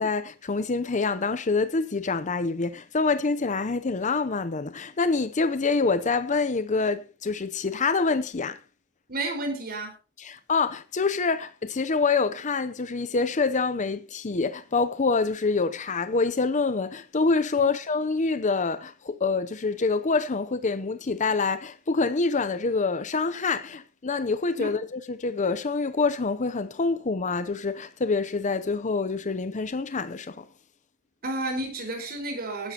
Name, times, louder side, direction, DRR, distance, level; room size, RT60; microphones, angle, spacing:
voice 1, 0.0-8.6 10.2-30.5, left 4 dB, 35° left, 0.6 m, -26 dB
voice 2, 9.1-9.9 17.6-17.7 24.6-24.7 31.2-32.7, right 2 dB, 45° right, 4.6 m, -31 dB
19.5 x 10.5 x 2.9 m
head